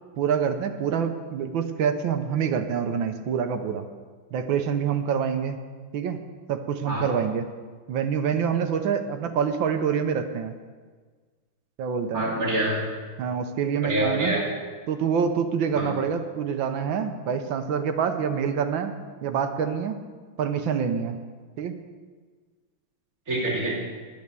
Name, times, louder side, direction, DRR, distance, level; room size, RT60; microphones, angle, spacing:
voice 1, 0.2-3.9 4.3-5.6 5.9-6.2 6.5-7.5 7.9-10.5 11.8-12.3 13.2-14.4 14.9-18.9 19.2-20.0 20.4-21.2 21.6-21.8, right 7 dB, 70° right, 8 dB, 1.5 m, -26 dB
voice 2, 12.1-12.8 13.8-14.4 15.7-15.9 23.3-23.8, right 1 dB, 40° right, -6 dB, 3.0 m, -26 dB
10.5 x 10.0 x 6.7 m, 1.5 s
omnidirectional pair, 2.4 m